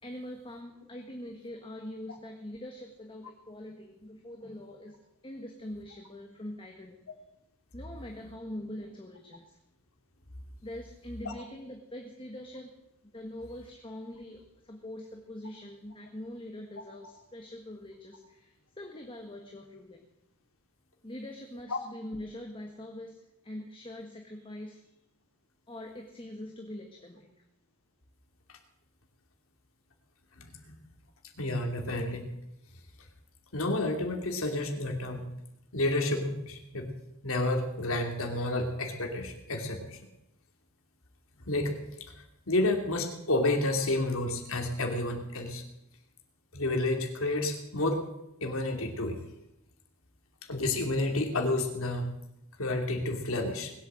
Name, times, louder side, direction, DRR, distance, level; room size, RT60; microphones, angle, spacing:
voice 1, 0.0-7.1 7.7-9.6 10.6-12.7 13.1-20.1 21.0-24.9 25.7-27.3, left 1 dB, 25° left, 2 dB, 1.6 m, -43 dB
voice 2, 30.3-30.7 31.4-32.3 33.5-35.3 35.7-36.9 37.2-40.0 41.5-45.6 46.5-48.0 48.4-49.2 50.5-52.1 52.6-53.7, left 2 dB, 65° left, 3 dB, 2.8 m, -30 dB
20.0 x 8.6 x 7.6 m, 0.86 s
head